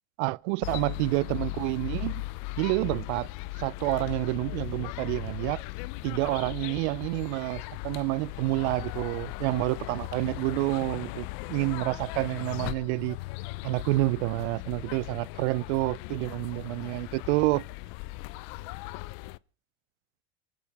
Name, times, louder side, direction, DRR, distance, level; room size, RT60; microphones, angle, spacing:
voice 1, 0.2-2.2 2.6-3.3 3.6-5.6 6.0-13.2 13.6-17.6, right 21 dB, 65° right, 0.7 m, -28 dB
sound 1, 0.6-19.4, left 20 dB, 55° left, 0.7 m, -38 dB
28.0 x 13.0 x 3.5 m
hypercardioid pair, 90°, 37 cm